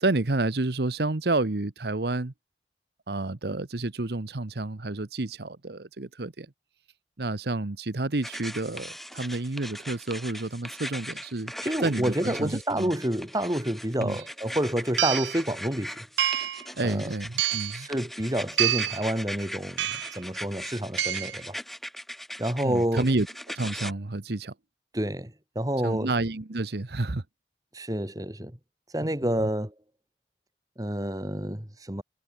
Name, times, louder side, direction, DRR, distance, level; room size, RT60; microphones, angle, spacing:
voice 1, 0.0-2.3 3.1-6.5 7.2-11.5 11.8-12.9 14.0-14.2 16.7-17.9 22.6-23.3 23.5-24.5 25.8-27.2 29.0-29.1 29.4-29.5, right 2 dB, 65° right, 1.0 m, -29 dB
sound 1, 8.2-23.9, equal, ahead, 4.9 m, -40 dB
voice 2, 11.6-16.1 16.8-17.1 17.7-21.6 22.4-23.1 24.9-26.1 27.7-28.6 28.9-29.7 30.8-32.0, right 1 dB, 20° right, 2.1 m, -29 dB
sound 2, 14.2-14.3 15.0-15.4 16.2-16.7 17.4-17.8 18.6-19.1 19.8-20.2 21.0-21.4, right 13 dB, 90° right, 0.5 m, -27 dB
head